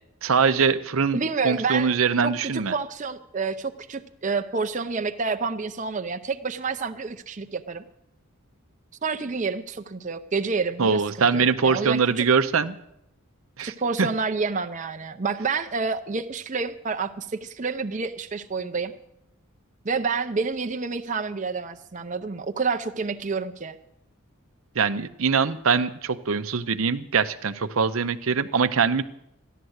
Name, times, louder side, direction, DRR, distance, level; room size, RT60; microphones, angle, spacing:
voice 1, 0.2-1.2 1.4-2.7 10.8-12.8 13.6-13.7 14.0-14.1 24.8-29.0, right 5 dB, 70° right, 11 dB, 0.7 m, -22 dB
voice 2, 1.1-1.9 2.2-7.8 9.0-12.3 13.6-18.9 19.8-23.7, right 4 dB, 35° right, 7 dB, 0.6 m, -29 dB
14.5 x 11.0 x 8.0 m, 0.80 s
head